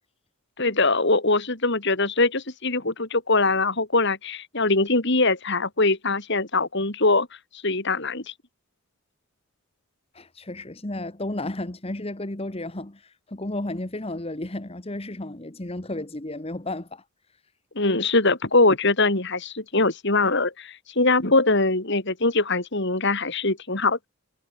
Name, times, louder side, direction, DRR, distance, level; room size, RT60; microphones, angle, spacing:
voice 1, 0.6-7.3 7.6-8.3 17.7-24.1, left 3 dB, 55° left, 3.0 m, -22 dB
voice 2, 10.1-17.0, left 1 dB, 25° left, 1.3 m, -33 dB
head